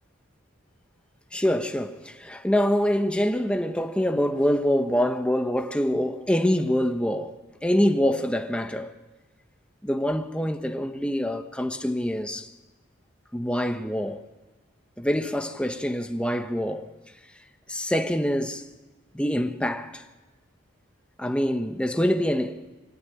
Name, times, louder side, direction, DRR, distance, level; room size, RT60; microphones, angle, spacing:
voice 1, 1.3-7.4 7.6-8.9 9.8-12.5 13.3-14.3 15.0-16.9 17.7-18.6 19.1-20.0 21.2-22.6, equal, 5° left, 1.2 m, -25 dB
24.5 x 23.0 x 10.0 m
head